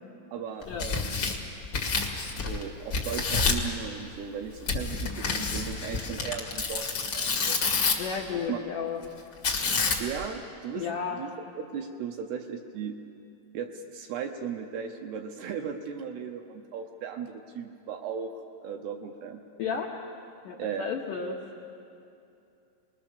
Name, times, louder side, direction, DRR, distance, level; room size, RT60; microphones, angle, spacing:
voice 1, 0.3-1.3 2.4-6.9 7.1-7.6 8.5-8.6 10.0-10.9 11.2-11.3 11.7-13.0 13.5-19.4 20.6-20.9, right 7 dB, 75° right, 4 dB, 2.6 m, -36 dB
Tearing, 0.6-2.6 2.9-3.7 4.7-8.2 9.4-10.2, left 4 dB, 65° left, 1.1 m, -28 dB
voice 2, 8.0-9.0 10.8-11.2 19.6-19.9 20.4-21.4, left 6 dB, 80° left, 0 dB, 1.9 m, -32 dB
25.5 x 20.5 x 6.9 m, 2.6 s
omnidirectional pair, 5.4 m